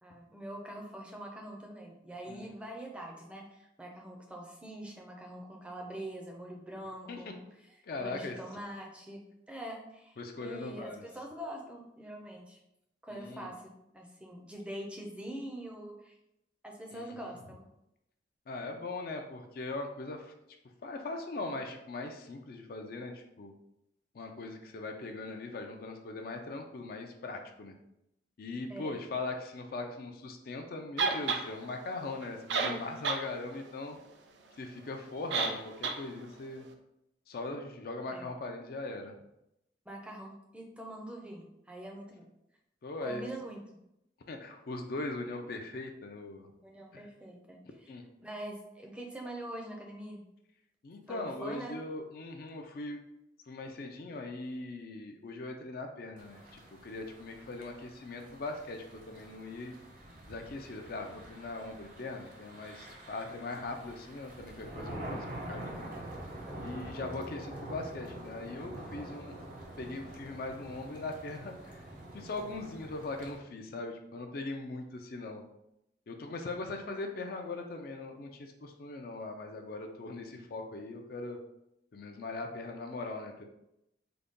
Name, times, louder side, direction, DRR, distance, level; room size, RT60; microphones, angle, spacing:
voice 1, 0.0-7.4 8.0-12.6 13.0-16.1 16.6-17.7 28.7-29.0 38.1-38.3 39.9-42.3 43.0-43.6 46.6-47.9 48.2-50.2 51.1-51.8, right 1 dB, 5° right, 0 dB, 0.5 m, -44 dB
voice 2, 7.8-8.4 10.2-11.1 13.1-13.5 16.9-17.2 18.5-20.3 20.8-23.5 24.1-27.7 28.4-34.0 34.6-36.7 37.3-39.1 42.8-43.2 44.3-46.5 46.9-47.0 47.9-48.0 50.8-53.0 53.5-59.7 60.3-65.9 66.6-69.4 69.8-71.8 72.1-75.4 76.1-81.4 81.9-83.4, left 2 dB, 55° left, 4 dB, 0.4 m, -40 dB
sound 1, 31.0-31.4 32.2-32.3 32.5-33.2 33.6-33.7 35.3-35.6 35.8-36.0, right 4 dB, 90° right, 0.4 m, -30 dB
sound 2, 56.2-73.4, right 1 dB, 50° right, 0.7 m, -46 dB
3.8 x 2.2 x 3.6 m, 0.85 s
head